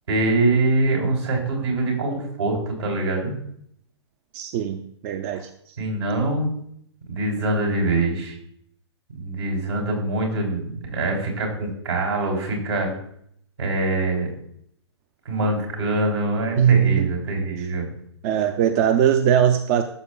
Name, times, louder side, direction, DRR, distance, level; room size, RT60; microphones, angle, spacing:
voice 1, 0.1-3.3 5.3-5.4 5.8-6.6 7.1-8.3 9.1-12.9 13.6-14.3 15.2-17.9, right 2 dB, 75° right, 0 dB, 3.2 m, -24 dB
voice 2, 4.3-5.8 16.6-17.1 18.2-19.8, right 9 dB, 35° right, 8 dB, 0.5 m, -20 dB
12.0 x 6.5 x 2.3 m, 0.70 s
figure-of-eight pair, 120°, 15 cm